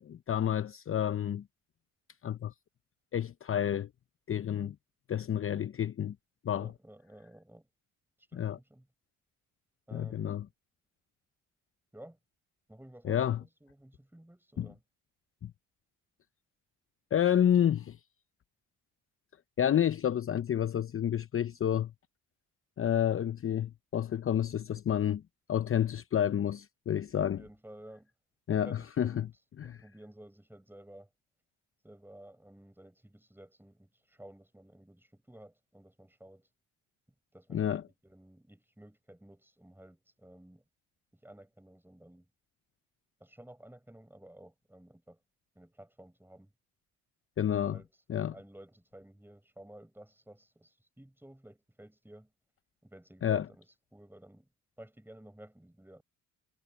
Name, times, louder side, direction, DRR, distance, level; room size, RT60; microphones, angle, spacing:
voice 1, 0.0-1.4 2.2-2.5 3.1-3.9 4.3-4.8 5.1-6.2 6.4-6.7 8.3-8.6 9.9-10.5 13.0-13.4 14.6-14.7 15.4-15.5 17.1-18.0 19.6-21.9 22.8-25.2 25.5-27.4 28.5-29.3 29.6-29.8 37.5-37.8 47.4-47.8 48.1-48.3 53.2-53.4, left 10 dB, 35° left, 0.7 m, -29 dB
voice 2, 6.5-7.7 8.3-8.9 9.9-10.5 11.9-12.2 12.7-14.8 27.2-28.1 28.5-29.3 29.6-31.1 31.8-36.5 37.3-40.6 41.1-42.3 43.2-45.2 45.6-46.5 47.6-47.9 48.3-52.3 52.8-53.6 53.9-54.5 54.8-56.0, right 1 dB, 5° right, 7.5 m, -54 dB
supercardioid pair, 75°, 37 cm